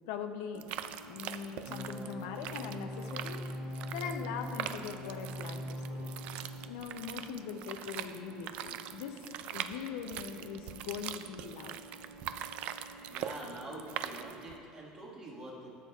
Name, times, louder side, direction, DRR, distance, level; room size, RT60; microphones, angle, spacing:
voice 1, 0.1-0.7 1.0-3.4 3.9-6.1 6.7-11.8, left 7 dB, 90° left, 6 dB, 0.5 m, -41 dB
sound 1, 0.5-14.6, right 9 dB, 55° right, 0.3 m, -43 dB
sound 2, 1.6-6.7, left 1 dB, 5° right, 1.8 m, -41 dB
voice 2, 13.1-15.7, right 1 dB, 30° right, -4 dB, 1.6 m, -45 dB
13.5 x 7.0 x 2.3 m, 2.6 s
cardioid pair, 150°, 2 cm